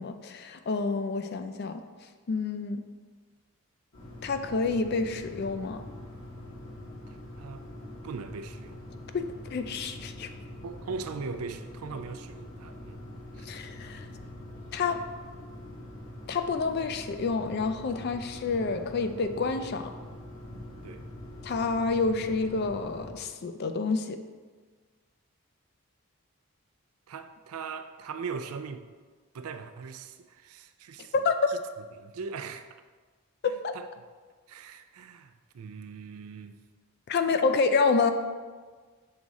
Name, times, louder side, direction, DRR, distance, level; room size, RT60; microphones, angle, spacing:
voice 1, 0.0-1.8 2.3-2.8 4.2-5.8 9.1-10.3 13.5-14.1 14.7-15.0 16.3-19.9 21.4-24.2 31.1-31.5 33.4-33.7 37.1-38.1, left 4 dB, 45° left, 0.4 m, -28 dB
sound 1, 3.9-23.1, left 1 dB, 65° left, 1.5 m, -44 dB
voice 2, 7.1-7.7 8.0-8.8 10.6-13.0 13.3-13.5 20.8-21.1 27.1-28.8 29.3-31.1 31.5-31.6 32.0-32.7 33.7-33.9 34.5-36.6, right 5 dB, 80° right, 0.4 m, -40 dB
6.3 x 3.6 x 4.1 m
head